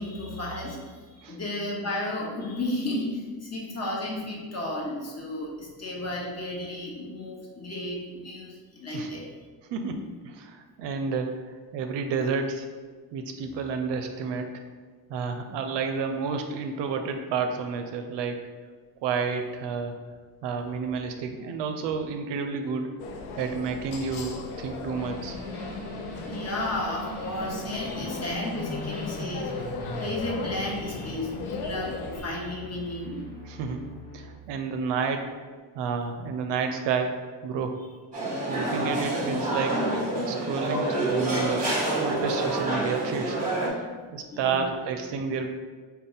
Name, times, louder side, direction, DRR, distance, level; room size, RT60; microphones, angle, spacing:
voice 1, 0.0-9.3 26.3-29.7 30.0-33.2 44.3-44.8, left 1 dB, 30° left, -3 dB, 1.0 m, -33 dB
voice 2, 9.7-12.7 13.1-14.5 15.1-18.4 19.0-19.9 20.4-22.9 23.4-25.4 33.4-33.8 34.1-35.3 35.7-37.8 38.5-39.8 40.3-45.5, right 5 dB, 60° right, 5 dB, 0.5 m, -30 dB
sound 1, 23.0-32.2, left 4 dB, 75° left, 0.6 m, -37 dB
sound 2, 24.9-34.3, equal, 50° left, 1.2 m, -40 dB
sound 3, 38.1-43.7, right 2 dB, 15° right, 1.2 m, -27 dB
3.7 x 2.2 x 3.9 m, 1.5 s
supercardioid pair, 60°, 49 cm